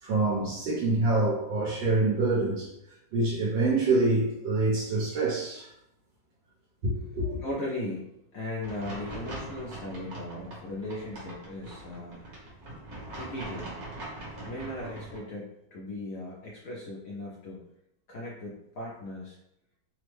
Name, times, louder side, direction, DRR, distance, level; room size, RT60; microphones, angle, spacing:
voice 1, 0.0-2.7 3.1-5.7 6.8-7.4, right 2 dB, 80° right, -7 dB, 1.6 m, -26 dB
voice 2, 7.4-12.3 13.1-13.7 14.4-17.6 18.1-19.4, left 1 dB, 75° left, -5 dB, 0.7 m, -38 dB
sound 1, 8.6-15.2, right 1 dB, 55° right, 1.4 m, -42 dB
3.5 x 2.0 x 3.1 m, 0.81 s
omnidirectional pair, 2.0 m